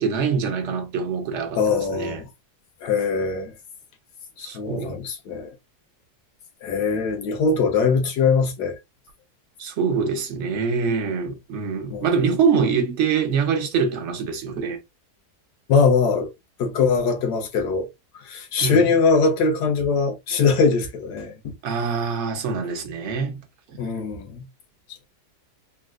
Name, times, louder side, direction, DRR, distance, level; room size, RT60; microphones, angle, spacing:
voice 1, 0.0-2.2 4.4-5.0 9.6-14.8 18.6-18.8 21.6-23.4, right 5 dB, 55° right, 1.0 m, -24 dB
voice 2, 1.6-2.3 2.8-3.5 4.4-5.5 6.6-8.8 11.9-12.1 15.7-16.3 16.6-17.9 18.2-21.5 23.8-24.4, left 4 dB, 85° left, 1.5 m, -21 dB
3.7 x 2.2 x 2.3 m
omnidirectional pair, 1.7 m